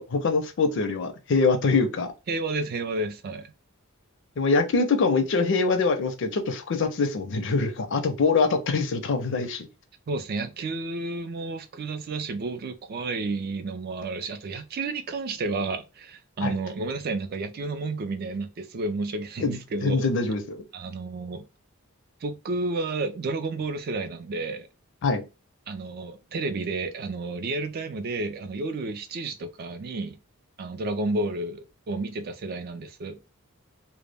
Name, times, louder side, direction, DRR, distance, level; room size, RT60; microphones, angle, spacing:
voice 1, 0.0-2.1 4.4-9.7 16.4-16.5 19.4-20.6 25.0-25.2, left 4 dB, 60° left, 0.5 m, -24 dB
voice 2, 2.3-3.5 10.1-20.1 20.7-21.4 22.2-24.7 25.7-30.2 30.6-33.2, right 3 dB, 45° right, 0.4 m, -31 dB
2.1 x 2.0 x 3.2 m
head